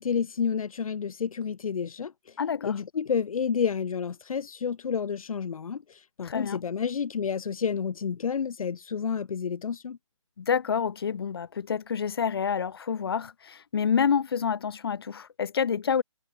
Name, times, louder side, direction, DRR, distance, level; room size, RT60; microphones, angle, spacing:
voice 1, 0.0-2.3 2.6-10.0, left 6 dB, 85° left, 0.5 m, -30 dB
voice 2, 2.4-2.8 6.2-6.6 10.4-16.0, left 7 dB, 45° left, 1.2 m, -28 dB
hypercardioid pair, 170°, 18 cm